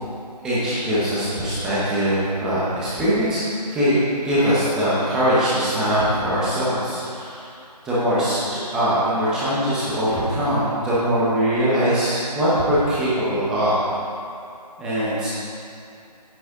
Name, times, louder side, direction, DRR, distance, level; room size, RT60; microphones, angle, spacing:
voice 1, 0.4-3.4 3.7-4.0 4.2-7.5 7.8-13.8 14.8-15.3, equal, 5° right, -11 dB, 0.8 m, -21 dB
9.0 x 7.9 x 4.8 m, 2.6 s
figure-of-eight pair, 165°, 21 cm